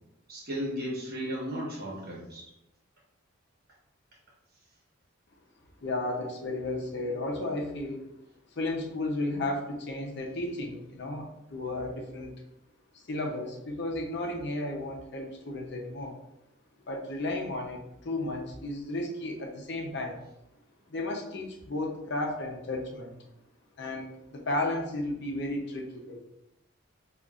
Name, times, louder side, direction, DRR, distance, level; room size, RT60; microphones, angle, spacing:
voice 1, 0.3-2.5, equal, 50° right, -3 dB, 1.2 m, -35 dB
voice 2, 5.8-8.0 8.6-12.4 13.0-16.2 16.9-20.2 20.9-23.1 23.8-26.2, left 2 dB, 60° left, 1 dB, 0.7 m, -33 dB
5.3 x 2.5 x 2.4 m, 0.86 s
head